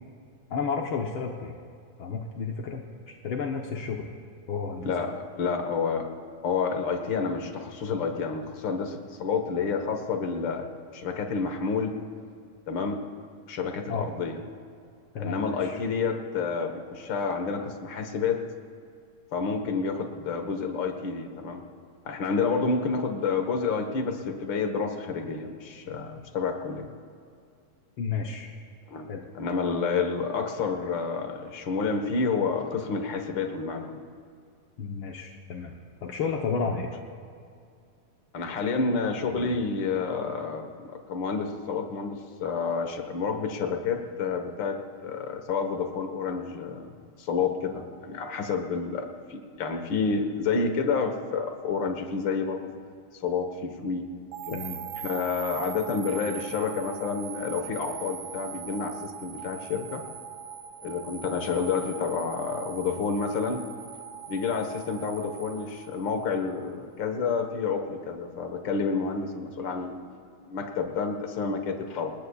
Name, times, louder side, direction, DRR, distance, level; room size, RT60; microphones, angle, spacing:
voice 1, 0.5-1.5 2.0-2.8 3.2-4.1 4.5-4.9 13.9-14.1 15.1-15.8 28.0-28.5 29.1-29.2 34.8-35.7 36.0-36.9 39.3-39.5 54.5-54.8, left 5 dB, 65° left, 0 dB, 1.3 m, -31 dB
voice 2, 4.8-6.1 6.4-10.7 10.9-11.9 12.7-13.0 13.5-14.4 15.2-18.4 19.3-21.6 22.0-26.8 28.9-29.1 29.3-33.9 36.7-36.8 38.3-46.9 47.2-52.7 53.2-54.0 54.5-54.6 55.0-60.0 60.8-63.6 64.3-70.0 70.5-72.1, left 5 dB, 50° left, 5 dB, 1.5 m, -29 dB
sound 1, 54.3-66.5, right 9 dB, 90° right, 2.6 m, -41 dB
29.0 x 19.5 x 2.4 m, 2.3 s
omnidirectional pair, 3.7 m